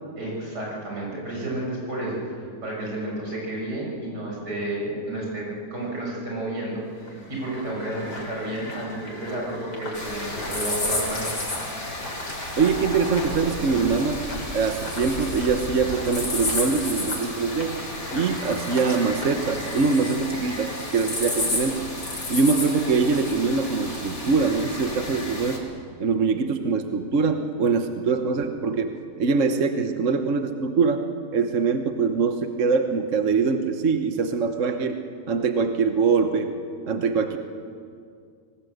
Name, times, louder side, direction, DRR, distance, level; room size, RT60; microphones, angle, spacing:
voice 1, 0.2-11.3, right 1 dB, 85° right, -3 dB, 7.3 m, -31 dB
sound 1, 6.8-19.5, left 1 dB, 85° left, 4.5 m, -40 dB
sound 2, 9.9-25.6, left 2 dB, 60° left, 4.4 m, -31 dB
voice 2, 12.6-14.2 14.5-17.8 18.1-21.8 22.3-25.6 26.0-28.9 29.2-31.0 31.3-35.0 35.3-36.5 36.9-37.4, right 5 dB, 50° right, 6 dB, 1.4 m, -23 dB
25.0 x 19.0 x 8.0 m, 2.2 s
omnidirectional pair, 1.7 m